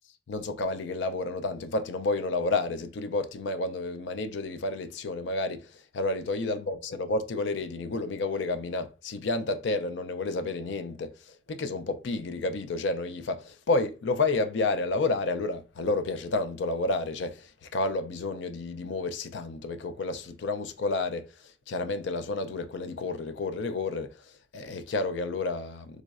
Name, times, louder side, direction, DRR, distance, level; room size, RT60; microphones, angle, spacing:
voice 1, 0.3-26.0, left 3 dB, 70° left, 0.4 m, -30 dB
3.6 x 3.0 x 2.4 m
head